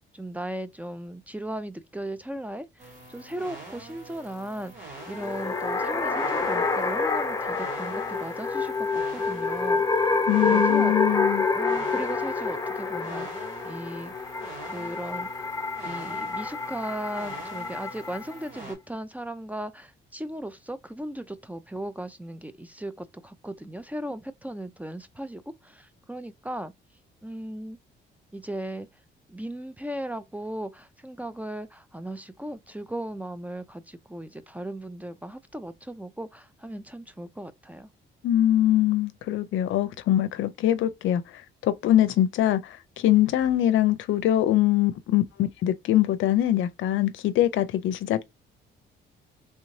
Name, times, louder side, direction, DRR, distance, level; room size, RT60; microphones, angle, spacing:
voice 1, 0.0-10.2 10.5-10.9 11.5-14.3 14.6-15.4 15.8-26.7 27.2-27.8 28.3-28.9 29.3-37.9, right 1 dB, 5° right, 0.4 m, -37 dB
sound 1, 2.8-18.7, right 2 dB, 85° right, 2.3 m, -45 dB
sound 2, 5.0-18.4, left 4 dB, 20° left, 0.9 m, -28 dB
voice 2, 10.3-11.5 38.2-48.2, left 13 dB, 75° left, 0.5 m, -23 dB
3.3 x 2.7 x 3.1 m
cardioid pair, 90°, 20 cm